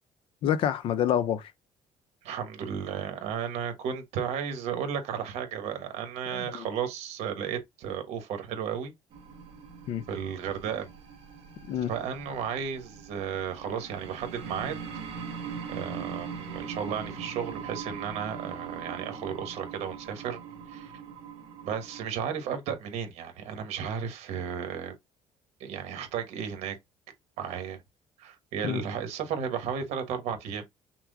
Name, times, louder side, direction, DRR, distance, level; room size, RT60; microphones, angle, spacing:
voice 1, 0.4-1.5 6.3-6.7 9.9-10.0 11.7-11.9 28.6-28.8, left 10 dB, 55° left, 0.6 m, -27 dB
voice 2, 2.2-8.9 10.1-10.9 11.9-14.8 15.7-20.4 20.7-20.9 21.6-24.9 25.6-26.8 27.4-27.8 28.2-30.7, right 7 dB, 75° right, 1.3 m, -34 dB
sound 1, 9.1-22.0, right 6 dB, 60° right, 1.4 m, -41 dB
5.9 x 2.2 x 3.7 m
cardioid pair, 180°, 11 cm